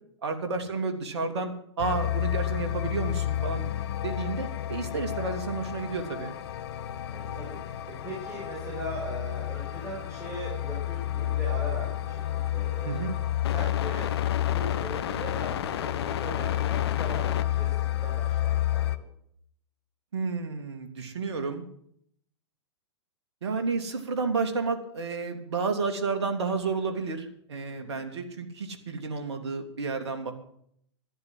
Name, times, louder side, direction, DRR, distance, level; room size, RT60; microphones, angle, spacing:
voice 1, 0.2-3.7 4.0-6.3 12.8-13.2 20.1-21.7 23.4-30.3, right 4 dB, 70° right, 6 dB, 2.7 m, -31 dB
sound 1, 1.8-19.0, left 12 dB, 60° left, 1.1 m, -30 dB
voice 2, 7.1-13.0 13.5-19.0 27.7-28.0, right 1 dB, 20° right, -3 dB, 6.1 m, -40 dB
13.5 x 11.5 x 7.6 m, 0.67 s
hypercardioid pair, 115°, 15 cm